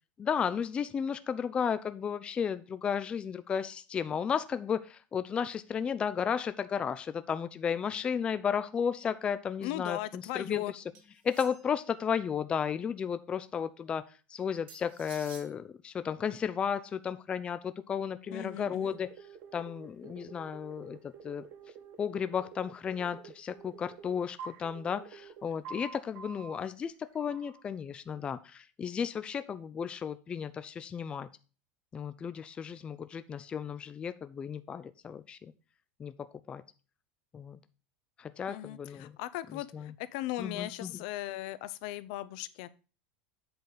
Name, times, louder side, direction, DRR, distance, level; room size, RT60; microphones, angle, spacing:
voice 1, 0.2-10.8 11.2-14.0 14.3-19.1 19.5-21.4 22.0-31.3 31.9-35.4 36.0-36.6 37.3-37.6 38.2-39.1 39.7-39.9 40.4-41.0, left 7 dB, 20° left, 12 dB, 0.4 m, -34 dB
voice 2, 9.6-10.7 18.3-19.0 38.5-42.7, left 15 dB, 60° left, 15 dB, 0.6 m, -38 dB
sound 1, 10.9-11.9 14.7-15.5, right 7 dB, 80° right, 2.3 m, -51 dB
sound 2, 18.3-26.6 27.2-27.6, right 6 dB, 50° right, 1.4 m, -48 dB
7.9 x 4.0 x 6.4 m, 0.35 s
supercardioid pair, 145°, 5 cm